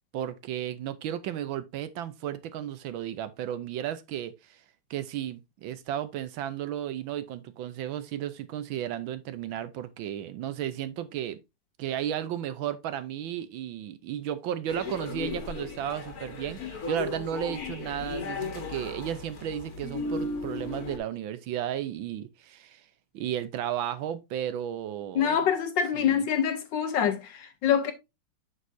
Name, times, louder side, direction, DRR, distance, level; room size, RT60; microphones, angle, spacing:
voice 1, 0.1-4.6 4.9-11.4 11.8-22.9 23.1-25.4 25.9-26.2, right 10 dB, 70° right, 1.3 m, -34 dB
sound 1, 14.7-21.0, left 3 dB, 45° left, 1.7 m, -36 dB
voice 2, 25.1-27.9, left 8 dB, 65° left, 1.4 m, -25 dB
7.4 x 6.3 x 2.6 m
omnidirectional pair, 2.4 m